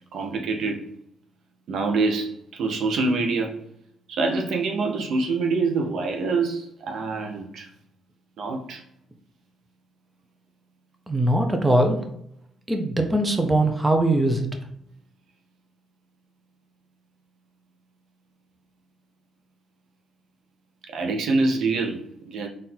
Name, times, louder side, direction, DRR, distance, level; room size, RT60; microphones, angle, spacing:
voice 1, 0.1-0.8 1.7-3.6 4.1-7.7 8.4-8.8 20.9-22.5, right 3 dB, 70° right, 3 dB, 0.7 m, -25 dB
voice 2, 11.1-12.0 12.7-14.5, right 1 dB, 15° right, 4 dB, 0.6 m, -21 dB
4.0 x 2.5 x 4.2 m, 0.74 s
cardioid pair, 90°, 0 cm